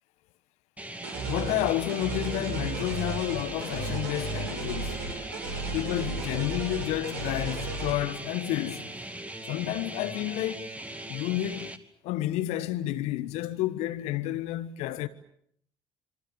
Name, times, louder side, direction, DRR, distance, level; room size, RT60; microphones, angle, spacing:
sound 1, 0.8-11.8, right 1 dB, 10° right, 2.5 m, -40 dB
sound 2, 1.0-7.9, right 3 dB, 75° right, 7.3 m, -35 dB
voice 1, 1.3-5.1 5.7-8.9 9.5-10.7 11.1-15.1, left 14 dB, 65° left, 1.3 m, -30 dB
27.0 x 26.0 x 7.5 m
figure-of-eight pair, 55°, 12 cm